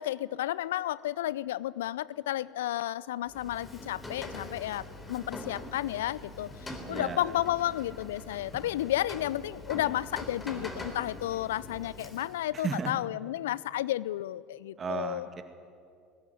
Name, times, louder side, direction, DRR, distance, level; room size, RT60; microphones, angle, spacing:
voice 1, 0.0-4.8 5.1-6.5 6.9-15.3, left 14 dB, 75° left, 21 dB, 0.4 m, -32 dB
Rain, 3.3-12.5, left 1 dB, 20° left, 3.7 m, -43 dB
voice 2, 6.9-7.3 12.5-12.9 14.8-15.4, right 5 dB, 35° right, 8 dB, 2.1 m, -34 dB
20.0 x 16.5 x 9.4 m, 2.4 s
figure-of-eight pair, 65°, 0 cm